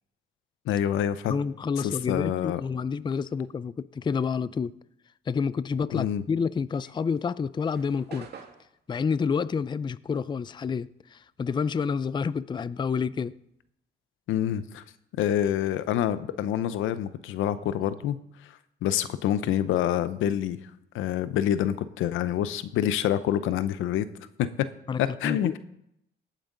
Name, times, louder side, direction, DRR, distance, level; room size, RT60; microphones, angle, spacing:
voice 1, 0.7-1.4 1.8-2.6 5.9-6.2 14.3-14.8 15.2-18.5 18.8-20.7 20.9-24.1 24.4-24.7 25.0-25.6, left 10 dB, 90° left, 0.7 m, -27 dB
voice 2, 1.3-4.8 5.3-8.3 8.9-13.3 24.9-25.6, left 5 dB, 25° left, 0.4 m, -29 dB
sound 1, 6.7-11.4 11.7-13.7, right 6 dB, 55° right, 1.9 m, -50 dB
17.5 x 9.1 x 3.9 m
cardioid pair, 90°, 20 cm